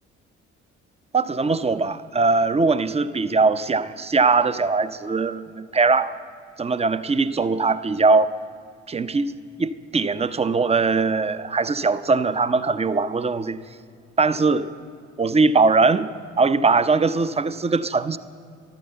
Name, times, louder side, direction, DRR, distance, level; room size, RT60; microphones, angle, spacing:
voice 1, 1.1-6.1 6.6-8.3 8.9-9.3 9.6-13.6 14.2-14.7 15.2-16.1 16.4-18.2, right 4 dB, 15° right, 14 dB, 0.6 m, -21 dB
14.0 x 11.5 x 7.9 m, 2.3 s
figure-of-eight pair, 45°, 37 cm